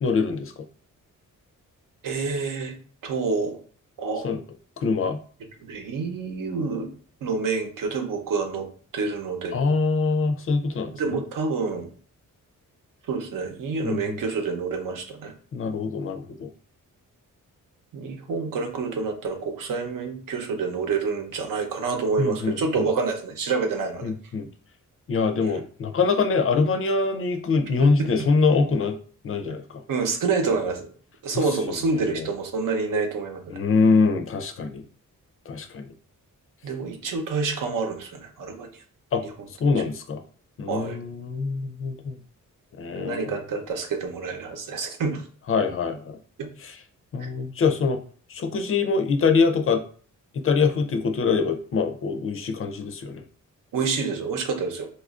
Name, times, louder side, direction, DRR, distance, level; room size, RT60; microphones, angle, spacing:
voice 1, 0.0-0.5 4.2-4.4 4.8-5.2 9.5-11.2 13.8-14.2 15.5-16.5 22.2-22.9 24.0-24.5 25.1-29.0 29.2-29.8 31.3-32.3 33.5-34.8 35.5-35.9 39.1-39.2 39.6-40.2 40.6-42.2 42.8-43.3 45.5-46.2 46.6-46.8 47.1-48.0 48.3-49.8 50.3-53.2, left 4 dB, 45° left, 7 dB, 0.4 m, -24 dB
voice 2, 2.0-2.7 3.0-3.6 4.0-4.2 5.6-6.9 7.2-8.7 8.9-9.6 10.9-11.9 13.1-15.3 17.9-24.1 25.4-25.6 27.8-28.3 29.9-30.9 31.2-33.6 36.6-38.7 40.7-41.0 42.9-45.2 46.4-46.5 53.7-54.9, right 4 dB, 85° right, 4 dB, 0.8 m, -28 dB
4.2 x 2.4 x 2.4 m, 0.43 s
wide cardioid pair, 130°, 32 cm